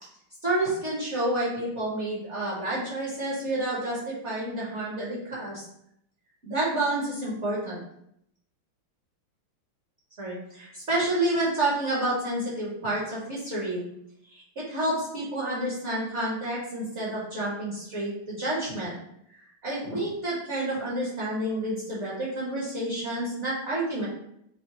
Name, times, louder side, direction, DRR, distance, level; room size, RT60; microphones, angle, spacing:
voice 1, 0.4-5.6 6.4-7.8 10.2-13.8 14.6-19.0 19.6-24.0, right 1 dB, 45° right, -7 dB, 0.9 m, -29 dB
5.5 x 2.0 x 2.8 m, 0.75 s
omnidirectional pair, 2.3 m